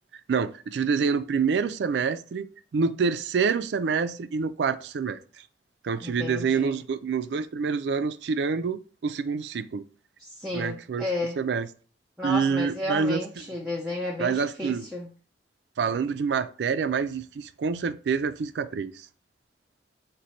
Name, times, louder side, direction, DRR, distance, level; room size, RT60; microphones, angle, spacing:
voice 1, 0.3-5.2 5.8-9.8 10.5-11.0 11.4-11.7 12.2-13.4 14.2-14.9 15.8-19.1, right 5 dB, 75° right, 0.4 m, -27 dB
voice 2, 6.0-6.8 10.2-11.4 12.2-15.1, left 2 dB, 5° right, 0.6 m, -32 dB
5.0 x 2.2 x 4.2 m
head